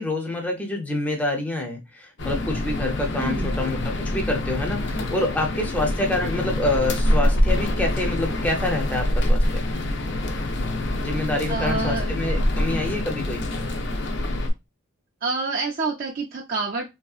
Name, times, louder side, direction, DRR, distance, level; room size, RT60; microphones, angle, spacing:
voice 1, 0.0-3.8 4.1-9.6 11.0-13.4, left 2 dB, 5° left, 1 dB, 0.5 m, -27 dB
sound 1, 2.2-14.5, left 1 dB, 55° left, 0.5 m, -25 dB
voice 2, 3.2-3.5 11.5-12.1 15.2-16.9, right 4 dB, 40° right, 0 dB, 0.4 m, -27 dB
3.1 x 2.7 x 2.3 m, 0.23 s
head